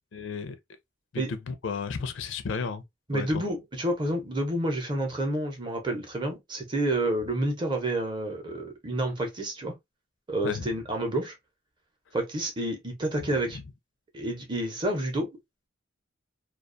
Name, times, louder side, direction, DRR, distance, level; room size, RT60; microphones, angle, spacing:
voice 1, 0.1-0.6 1.1-2.8 3.1-3.4 10.4-10.7 13.2-13.3, left 5 dB, 70° left, 0.4 m, -33 dB
voice 2, 3.1-9.7 10.3-11.4 12.1-13.6 14.1-15.4, right 1 dB, 25° right, 0.6 m, -29 dB
2.3 x 2.3 x 2.4 m
head